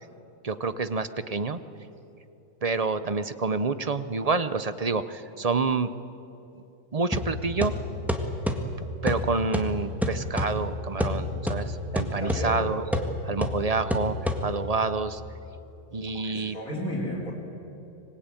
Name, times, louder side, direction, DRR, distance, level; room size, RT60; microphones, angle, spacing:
voice 1, 0.4-1.6 2.6-5.9 6.9-7.7 8.8-15.2 15.9-16.6, right 4 dB, 35° right, 12 dB, 0.6 m, -28 dB
sound 1, 7.1-14.8, left 1 dB, ahead, 1.7 m, -30 dB
voice 2, 12.2-12.6 16.1-17.3, equal, 60° left, -5 dB, 3.7 m, -33 dB
25.5 x 20.5 x 9.1 m, 2.9 s
omnidirectional pair, 1.7 m